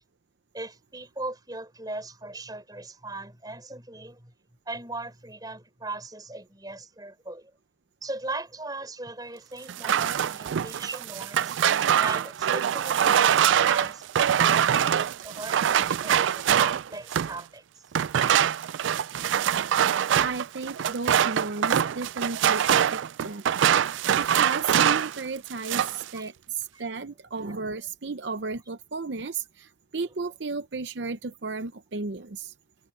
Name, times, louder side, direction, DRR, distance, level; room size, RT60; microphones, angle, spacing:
voice 1, 0.5-4.3 4.6-7.5 8.0-11.6 12.0-17.6 26.1-26.3 26.7-26.9, right 2 dB, 20° right, 6.8 m, -39 dB
sound 1, 9.7-17.4 17.9-25.2 25.5-26.0, right 9 dB, 90° right, 0.4 m, -23 dB
voice 2, 20.2-23.4 23.7-32.5, right 4 dB, 70° right, 0.7 m, -34 dB
head